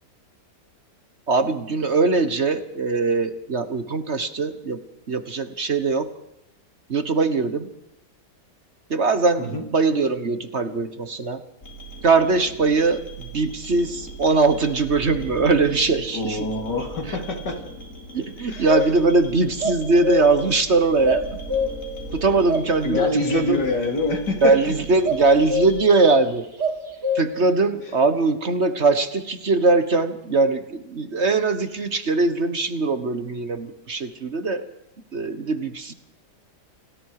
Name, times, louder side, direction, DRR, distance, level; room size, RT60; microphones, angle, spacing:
voice 1, 1.3-4.8 5.1-6.1 6.9-7.7 8.9-11.4 12.0-16.5 17.0-17.2 18.1-21.4 22.1-23.6 24.4-26.5 27.1-34.6 35.1-35.9, right 3 dB, 45° right, 11 dB, 1.5 m, -21 dB
sound 1, 11.6-25.8, right 2 dB, 45° left, 4.4 m, -39 dB
voice 2, 16.1-17.6 18.5-18.7 22.8-24.5, left 2 dB, 90° left, 4 dB, 3.8 m, -25 dB
sound 2, 18.6-19.2 19.6-20.5 21.0-22.0 22.5-23.4 25.0-26.1 26.6-27.5, left 2 dB, 80° right, 4.3 m, -25 dB
28.5 x 19.0 x 4.9 m, 0.82 s
omnidirectional pair, 1.8 m